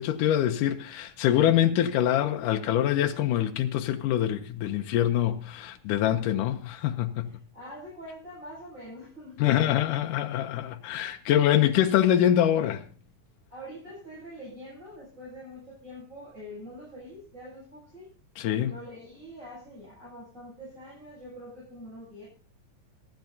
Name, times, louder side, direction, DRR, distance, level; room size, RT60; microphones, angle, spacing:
voice 1, 0.0-7.3 9.4-12.8 18.4-18.7, left 11 dB, 85° left, 2.4 m, -24 dB
voice 2, 7.2-9.8 13.5-18.1 18.7-22.3, equal, 20° right, 8.2 m, -44 dB
27.5 x 10.5 x 2.8 m
omnidirectional pair, 3.6 m